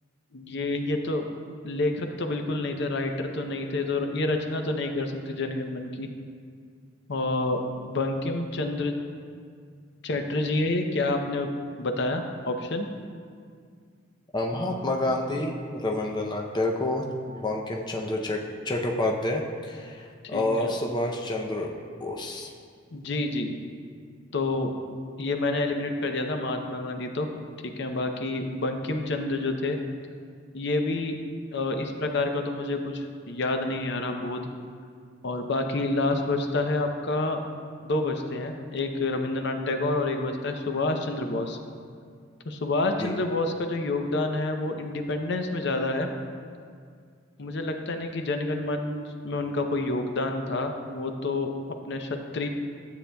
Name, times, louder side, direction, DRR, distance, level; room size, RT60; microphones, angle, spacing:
voice 1, 0.3-1.3 1.6-6.1 7.1-8.9 10.0-11.5 11.8-12.9 20.3-20.7 22.9-23.5 24.3-24.7 25.2-27.3 27.6-29.8 30.5-31.2 31.5-34.5 35.2-37.4 37.8-41.6 42.5-46.1 47.4-52.5, left 2 dB, 60° left, 5 dB, 0.6 m, -28 dB
voice 2, 14.3-22.5 43.0-43.1, left 1 dB, 20° left, 0 dB, 0.6 m, -29 dB
12.5 x 8.2 x 2.3 m, 2.1 s
head